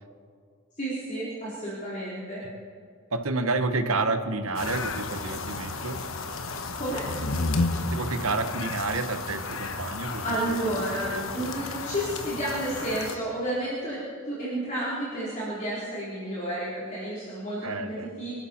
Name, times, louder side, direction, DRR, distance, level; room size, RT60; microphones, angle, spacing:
voice 1, 0.8-2.4 6.8-7.0 10.2-17.9 18.2-18.3, right 1 dB, 35° left, -8 dB, 4.0 m, -31 dB
voice 2, 3.1-6.0 7.8-11.5 17.6-18.1, right 3 dB, 80° right, 8 dB, 1.2 m, -30 dB
sound 1, 4.5-13.2, left 3 dB, 70° left, 1.2 m, -32 dB
25.5 x 12.5 x 4.5 m, 2.1 s
head